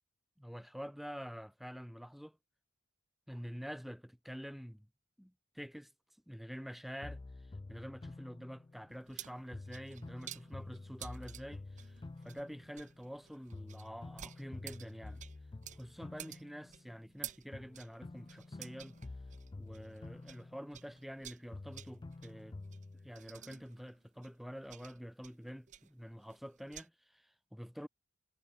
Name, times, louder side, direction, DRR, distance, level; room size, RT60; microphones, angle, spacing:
voice 1, 0.4-2.4 3.3-4.9 5.2-5.9 6.3-7.2 7.7-15.2 15.8-19.0 19.6-22.6 23.0-27.9, equal, ahead, 1.0 m, -47 dB
sound 1, 7.0-9.2 9.5-13.2 13.5-17.2 17.5-21.2 21.5-23.1, left 2 dB, 20° left, 0.4 m, -50 dB
sound 2, 8.9-20.5 20.7-26.9, right 11 dB, 35° right, 0.6 m, -52 dB
head